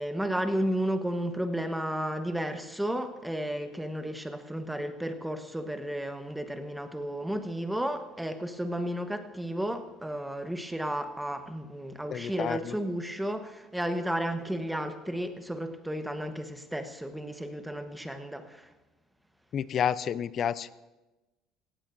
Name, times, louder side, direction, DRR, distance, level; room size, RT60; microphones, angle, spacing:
voice 1, 0.0-18.7, right 1 dB, 5° right, 7 dB, 1.1 m, -33 dB
voice 2, 12.1-12.8 19.5-20.8, left 8 dB, 45° left, 17 dB, 0.5 m, -30 dB
17.5 x 16.0 x 2.6 m, 1.1 s
cardioid pair, 110°, 0 cm